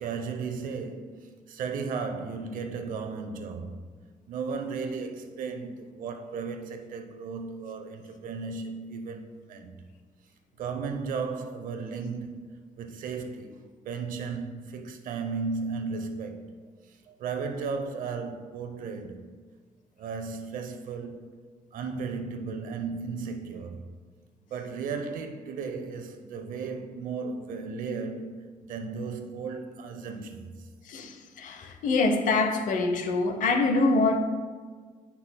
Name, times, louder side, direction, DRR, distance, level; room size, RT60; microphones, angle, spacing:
voice 1, 0.0-3.9 4.3-9.8 10.6-12.5 12.8-16.5 16.9-19.3 20.0-21.3 21.7-23.8 24.5-28.3 28.7-30.5, right 5 dB, 80° right, 0.7 m, -35 dB
voice 2, 30.9-34.2, left 3 dB, 70° left, 0.7 m, -25 dB
9.6 x 5.6 x 2.2 m
cardioid pair, 155°, 14 cm